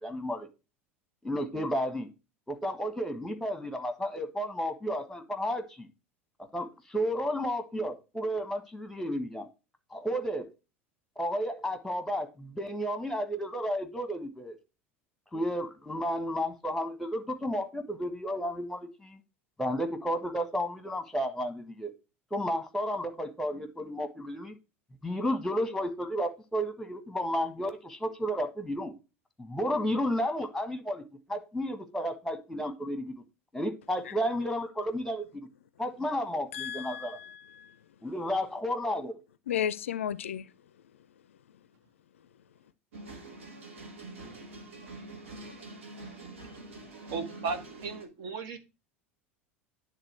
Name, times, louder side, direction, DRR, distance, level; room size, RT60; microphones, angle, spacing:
voice 1, 0.0-0.5 1.2-2.1 2.5-5.9 6.5-9.5 9.9-10.5 11.2-14.5 15.3-19.2 19.6-21.9 22.3-24.5 25.0-28.9 29.4-31.0 31.3-33.2 33.5-35.5 35.8-37.2 38.0-39.2, equal, 5° left, 1.5 m, -32 dB
voice 2, 36.5-37.8 39.5-40.5, left 9 dB, 70° left, 0.4 m, -34 dB
sound 1, 42.9-48.1, right 2 dB, 70° right, 1.6 m, -45 dB
voice 3, 47.1-48.6, right 4 dB, 50° right, 1.4 m, -35 dB
9.9 x 3.7 x 4.5 m
figure-of-eight pair, 75°, 7 cm